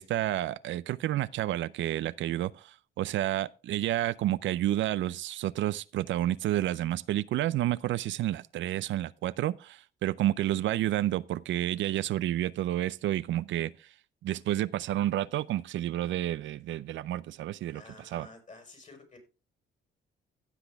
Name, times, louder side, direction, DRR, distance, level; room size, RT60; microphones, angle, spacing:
voice 1, 0.0-13.9 14.2-17.8 18.1-18.3, right 13 dB, 70° right, 0.4 m, -30 dB
voice 2, 17.7-19.2, left 3 dB, 35° left, 4.5 m, -51 dB
16.0 x 6.0 x 3.4 m
cardioid pair, 90°, 20 cm